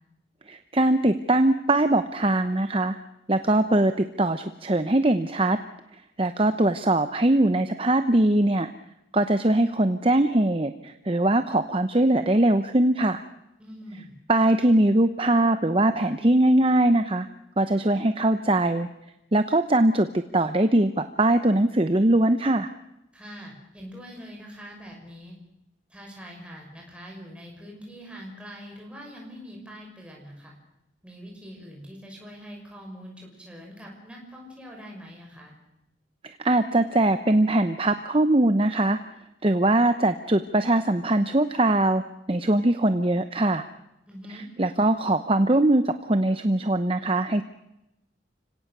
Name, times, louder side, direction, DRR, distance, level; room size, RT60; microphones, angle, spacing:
voice 1, 0.5-3.0 3.3-5.6 6.2-8.7 9.1-13.2 14.3-17.3 17.6-18.9 19.3-20.1 20.3-22.7 36.2-39.0 39.4-42.0 42.3-43.6 44.3-47.4, right 1 dB, 30° right, 9 dB, 0.8 m, -21 dB
voice 2, 13.6-14.2 23.1-25.4 25.9-30.5 31.0-35.5 44.1-44.5, equal, 5° right, -1 dB, 6.1 m, -43 dB
30.0 x 17.5 x 6.7 m, 0.88 s
head